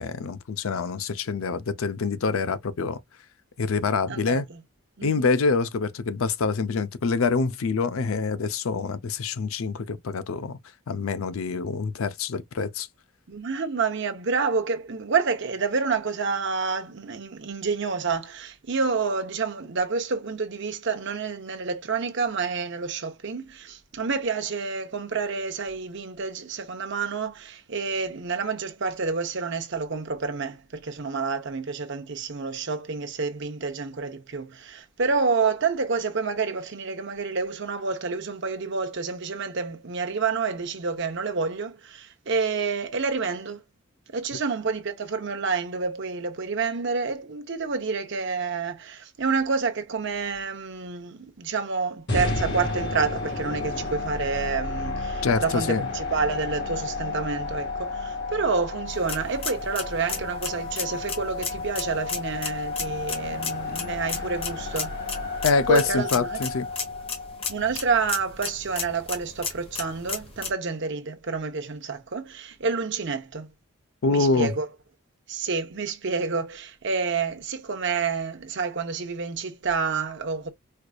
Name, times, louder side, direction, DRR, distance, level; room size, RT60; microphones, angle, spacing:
voice 1, 0.0-3.0 3.6-4.5 5.0-10.6 10.9-12.9 55.2-55.9 65.4-66.7 74.0-74.5, left 4 dB, 70° left, 0.5 m, -25 dB
voice 2, 4.1-4.6 5.0-5.4 13.3-43.6 44.1-65.0 65.7-66.4 67.5-73.5 74.1-74.7 75.3-80.5, right 4 dB, 55° right, 0.7 m, -28 dB
sound 1, 52.1-68.2, left 3 dB, 55° left, 1.7 m, -32 dB
sound 2, 58.9-70.5, left 5 dB, 25° left, 1.0 m, -35 dB
4.5 x 2.5 x 2.2 m
head